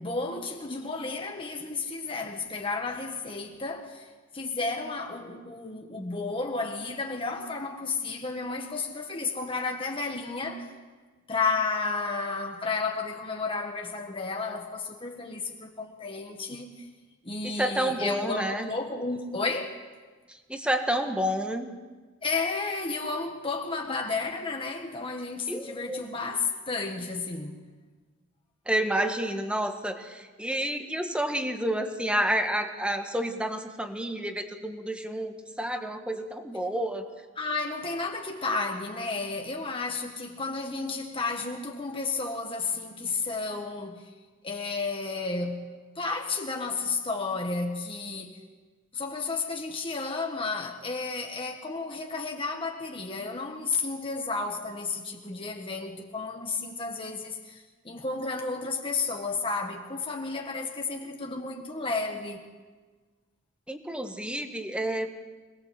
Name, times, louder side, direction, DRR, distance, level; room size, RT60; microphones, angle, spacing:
voice 1, 0.0-10.7 11.3-16.9 17.2-19.8 22.2-27.6 37.4-44.1 44.4-45.7 45.9-48.4 48.9-62.4, left 3 dB, 25° left, 1.5 m, -32 dB
voice 2, 17.4-18.7 20.3-21.7 25.5-26.0 28.6-37.1 63.7-65.1, right 1 dB, 5° right, 1.7 m, -29 dB
26.0 x 19.5 x 7.7 m
head